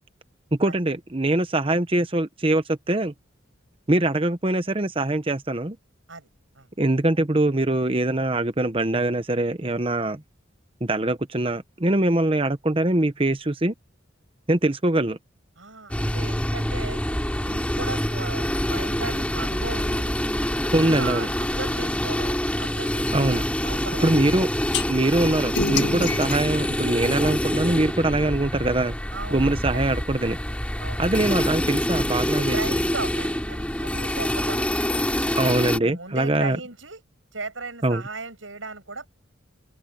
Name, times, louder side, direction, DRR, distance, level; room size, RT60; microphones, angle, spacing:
voice 1, 0.5-3.1 3.9-5.8 6.8-10.2 10.8-13.7 14.5-15.2 20.7-21.3 23.1-23.4 24.0-24.5 24.9-28.9 29.3-30.4 31.0-32.8 35.4-36.6 37.8-38.0, right 2 dB, 30° right, 1.0 m, -23 dB
voice 2, 15.6-17.0 17.4-20.1 20.9-24.1 29.1-29.9 30.8-31.0 32.3-34.7 35.8-37.0 37.3-39.1, right 3 dB, 80° right, 7.8 m, -36 dB
sound 1, 15.9-35.8, equal, 5° left, 3.0 m, -26 dB
sound 2, 24.7-24.8 25.5-27.7, left 4 dB, 60° left, 1.9 m, -29 dB
open air
head